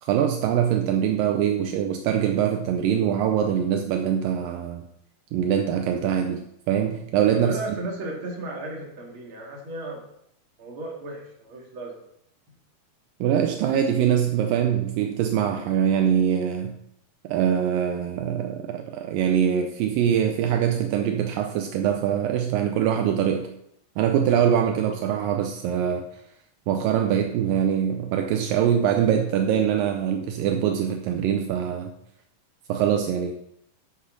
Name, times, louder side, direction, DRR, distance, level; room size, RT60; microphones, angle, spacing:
voice 1, 0.0-4.9 5.3-7.8 13.2-16.7 17.2-23.5 24.0-26.1 26.7-31.9 32.7-33.3, right 9 dB, 80° right, 5 dB, 2.3 m, -23 dB
voice 2, 7.3-10.0 10.6-11.9, right 1 dB, 40° right, -1 dB, 2.6 m, -34 dB
12.0 x 7.7 x 4.0 m, 0.74 s
omnidirectional pair, 4.1 m